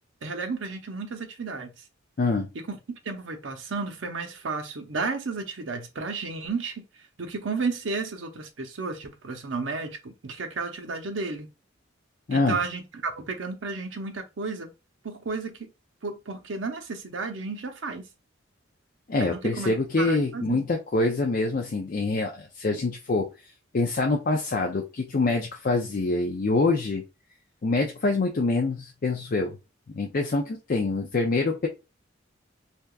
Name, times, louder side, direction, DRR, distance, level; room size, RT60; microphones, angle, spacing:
voice 1, 0.2-1.7 2.5-2.8 3.0-6.8 7.2-11.5 12.3-14.7 15.0-15.7 16.0-18.1 19.2-19.7 20.0-20.6, right 4 dB, 80° right, 0.7 m, -32 dB
voice 2, 19.1-23.3 23.7-27.0 27.6-29.6 29.9-31.7, left 3 dB, 45° left, 0.5 m, -25 dB
3.4 x 2.8 x 2.3 m
head